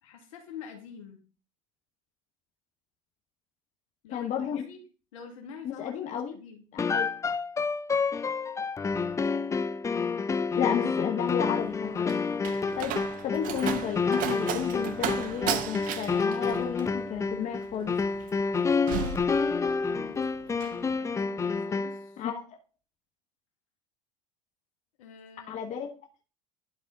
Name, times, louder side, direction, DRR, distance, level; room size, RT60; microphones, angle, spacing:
voice 1, 0.0-1.2 4.0-4.8 5.1-6.6 19.8-20.3 20.6-22.2 25.0-25.6, left 6 dB, 80° left, 3 dB, 2.0 m, -47 dB
voice 2, 4.1-4.7 5.6-6.3 6.7-7.1 10.5-12.2 12.7-17.9 22.2-22.6 25.5-25.9, left 8 dB, 45° left, 3 dB, 1.2 m, -32 dB
sound 1, 6.8-22.1, left 4 dB, 15° left, 0.5 m, -29 dB
Slam, 11.6-20.0 20.3-20.8, right 9 dB, 55° right, 0.9 m, -35 dB
11.5 x 4.1 x 3.9 m, 0.36 s
hypercardioid pair, 80°, 17 cm